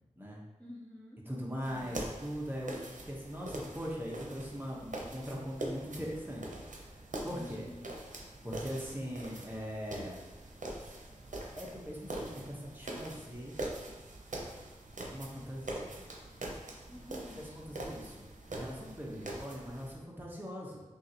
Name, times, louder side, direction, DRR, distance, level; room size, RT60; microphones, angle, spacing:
voice 1, 0.6-1.2 1.7-1.9 7.3-7.9 16.9-17.4 19.2-19.4, left 1 dB, 10° left, -6 dB, 0.6 m, -49 dB
voice 2, 1.3-2.7 3.0-6.6 7.2-7.7 8.4-10.2 11.6-13.6 15.1-15.9 17.5-18.2 18.5-20.8, equal, 15° right, -4 dB, 1.0 m, -40 dB
sound 1, 1.6-20.0, right 1 dB, 75° right, 0.7 m, -43 dB
6.0 x 2.6 x 2.9 m, 1.1 s
wide cardioid pair, 70°, 13 cm